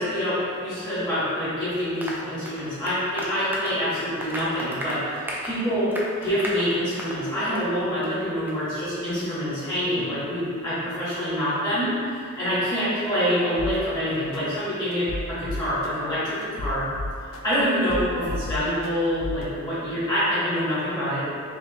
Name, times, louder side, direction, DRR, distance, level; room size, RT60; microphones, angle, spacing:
voice 1, 0.0-5.9 6.2-16.9 17.4-21.2, equal, 20° left, -12 dB, 1.3 m, -26 dB
Applause, 2.0-7.2 7.5-7.7 8.0-8.1 8.5-8.6, equal, 10° right, 0.3 m, -35 dB
sound 1, 13.6-13.8 14.3-14.4 14.9-15.9 16.4-17.6 17.9-18.9 19.2-19.4, left 2 dB, 75° left, 0.4 m, -31 dB
3.5 x 2.8 x 3.0 m, 2.3 s
head